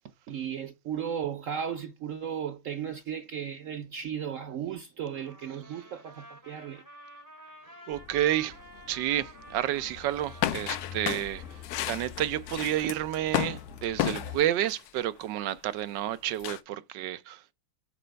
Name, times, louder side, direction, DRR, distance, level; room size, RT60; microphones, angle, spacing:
voice 1, 0.3-6.8, right 8 dB, 90° right, 0.7 m, -35 dB
Trumpet, 5.1-11.7, right 1 dB, 10° right, 3.2 m, -51 dB
Truck, 7.9-14.4, left 9 dB, 40° left, 1.9 m, -46 dB
voice 2, 7.9-8.6 8.9-11.4 11.8-17.5, right 12 dB, 70° right, 1.2 m, -30 dB
sound 1, 10.4-14.9 16.4-16.6, left 13 dB, 75° left, 0.9 m, -31 dB
6.8 x 4.2 x 5.1 m
omnidirectional pair, 2.2 m